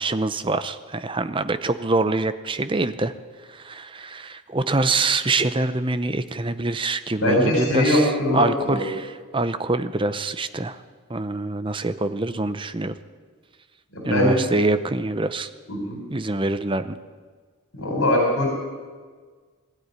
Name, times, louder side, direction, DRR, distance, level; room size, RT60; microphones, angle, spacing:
voice 1, 0.0-3.1 3.5-10.8 11.1-12.9 14.0-15.5 16.1-17.0, right 2 dB, 20° right, 12 dB, 0.7 m, -25 dB
voice 2, 7.2-8.9 13.9-14.4 15.7-16.0 17.7-18.5, left 1 dB, 65° left, 1 dB, 4.5 m, -21 dB
21.0 x 13.5 x 9.7 m, 1.5 s
head